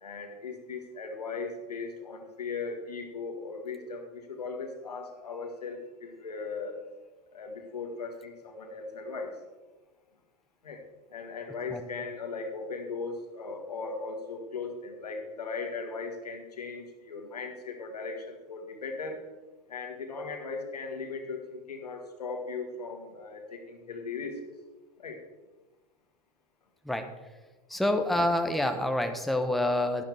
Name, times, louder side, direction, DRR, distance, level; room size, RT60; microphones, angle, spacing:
voice 1, 0.0-6.8 7.3-9.3 10.6-10.8 11.1-19.2 19.7-24.4 25.0-25.2, left 4 dB, 85° left, 4 dB, 1.8 m, -38 dB
voice 2, 27.7-30.0, left 1 dB, ahead, 5 dB, 1.1 m, -27 dB
12.0 x 10.5 x 3.5 m, 1.2 s
hypercardioid pair, 90°, 20 cm